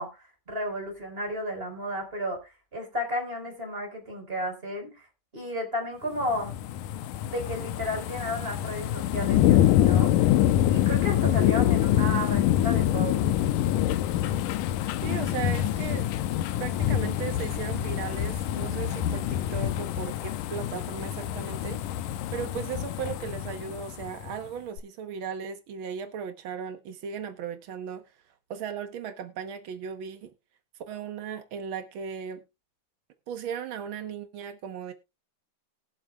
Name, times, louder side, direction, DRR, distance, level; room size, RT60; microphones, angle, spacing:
voice 1, 0.0-5.1 5.3-6.5 7.2-10.3 10.7-13.2, equal, 15° right, 4.6 m, -33 dB
sound 1, 6.2-24.3 24.8-24.9, left 12 dB, 80° left, 2.2 m, -26 dB
voice 2, 15.0-16.1 16.6-21.8 22.1-28.0 28.5-30.3 30.9-32.4 33.3-34.9, right 7 dB, 90° right, 1.1 m, -36 dB
22.0 x 7.3 x 2.3 m
omnidirectional pair, 3.9 m